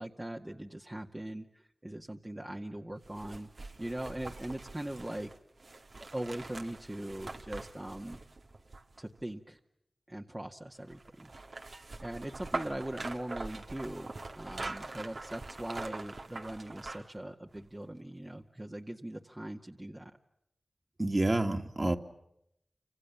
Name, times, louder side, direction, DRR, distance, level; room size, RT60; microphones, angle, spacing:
voice 1, 0.0-5.3 6.1-8.2 9.0-9.6 10.1-11.7 12.0-14.1 14.3-20.1, right 1 dB, 20° right, 1 dB, 2.0 m, -41 dB
sound 1, 3.0-9.2 10.9-17.2 17.6-17.7, right 3 dB, 65° right, 2.5 m, -43 dB
voice 2, 21.0-22.0, right 2 dB, 35° right, 5 dB, 2.8 m, -28 dB
29.5 x 26.5 x 7.2 m, 0.80 s
cardioid pair, 45°, 0 cm